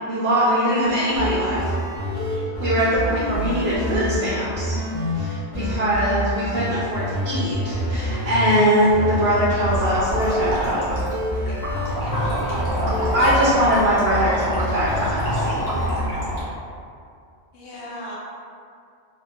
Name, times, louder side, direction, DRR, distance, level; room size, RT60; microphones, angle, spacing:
voice 1, 0.1-1.6 2.6-4.8 5.2-10.8 13.1-15.7, equal, 70° right, -8 dB, 0.8 m, -22 dB
sound 1, 0.8-10.6 10.9-16.1, equal, 30° left, 1.0 m, -27 dB
voice 2, 2.1-2.5 12.0-13.2 17.5-18.2, left 1 dB, 90° left, -5 dB, 1.0 m, -38 dB
sound 2, 9.7-16.4, equal, 70° left, 1.2 m, -27 dB
2.8 x 2.4 x 2.5 m, 2.4 s
omnidirectional pair, 1.1 m